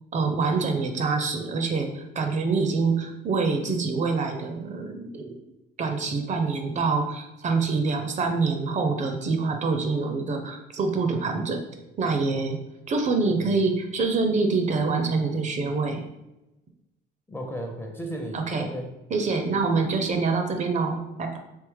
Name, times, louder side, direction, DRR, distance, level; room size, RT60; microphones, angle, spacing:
voice 1, 0.1-5.3 5.8-11.6 12.0-12.6 12.9-16.1 18.3-18.6 19.1-21.4, right 4 dB, 40° right, 5 dB, 0.5 m, -25 dB
voice 2, 13.1-13.6 17.3-18.9, equal, 10° left, 2 dB, 0.5 m, -35 dB
3.5 x 2.8 x 3.2 m, 0.98 s
cardioid pair, 110°, 20 cm